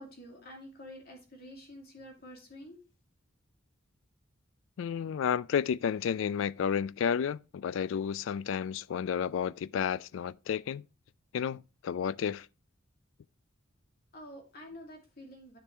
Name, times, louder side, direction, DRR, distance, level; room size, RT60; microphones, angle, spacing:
voice 1, 0.0-2.8 14.1-15.6, equal, 50° left, 2.5 m, -48 dB
voice 2, 4.8-10.9 11.3-12.5, left 7 dB, 65° left, 0.3 m, -31 dB
10.0 x 5.2 x 3.3 m
head